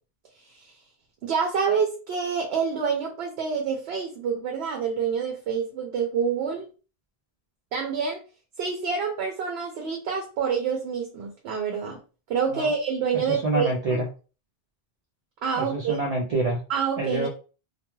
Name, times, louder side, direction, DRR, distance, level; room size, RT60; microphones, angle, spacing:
voice 1, 1.2-6.7 7.7-8.2 8.6-12.0 12.3-14.0 15.4-16.0 16.7-17.3, right 6 dB, 85° right, 2 dB, 0.8 m, -27 dB
voice 2, 13.3-14.1 15.6-16.6 17.0-17.3, right 2 dB, 50° right, -1 dB, 0.5 m, -26 dB
2.3 x 2.2 x 2.9 m, 0.35 s
omnidirectional pair, 1.0 m